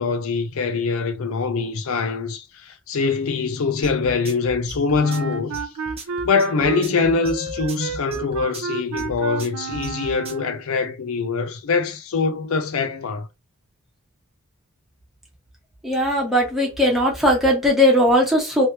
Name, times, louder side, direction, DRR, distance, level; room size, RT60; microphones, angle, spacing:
voice 1, 0.0-5.7 6.2-13.3, left 4 dB, 65° left, 0.5 m, -23 dB
sound 1, 3.8-10.5, right 3 dB, 25° right, 0.8 m, -36 dB
Wind instrument woodwind instrument, 4.9-10.6, right 5 dB, 70° right, 0.4 m, -31 dB
voice 2, 15.8-18.7, equal, ahead, 1.1 m, -18 dB
3.1 x 3.0 x 2.9 m
head